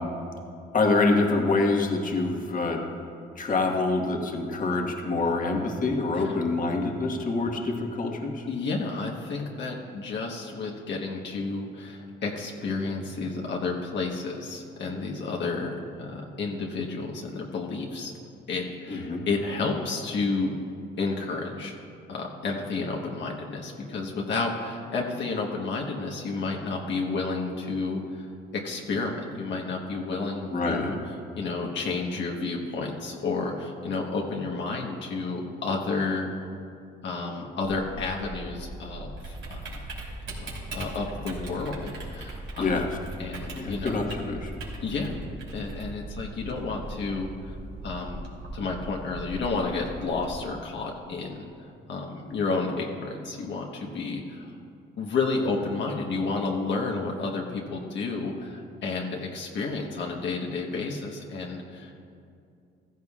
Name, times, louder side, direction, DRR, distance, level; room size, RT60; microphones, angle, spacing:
voice 1, 0.7-2.8 3.4-8.5 18.9-19.2 30.5-30.9 42.6-42.9 43.6-44.5, left 3 dB, 40° left, 2 dB, 1.5 m, -26 dB
voice 2, 8.5-18.1 18.5-20.6 21.0-21.7 22.1-31.0 31.3-36.3 37.0-39.6 40.4-44.0 44.8-45.2 45.5-47.5 47.8-48.2 48.5-54.6 55.0-62.0, left 3 dB, 65° left, -1 dB, 1.3 m, -31 dB
Typing, 37.6-50.3, right 1 dB, 70° right, 3.2 m, -39 dB
15.0 x 15.0 x 2.4 m, 2.4 s
cardioid pair, 90°, 20 cm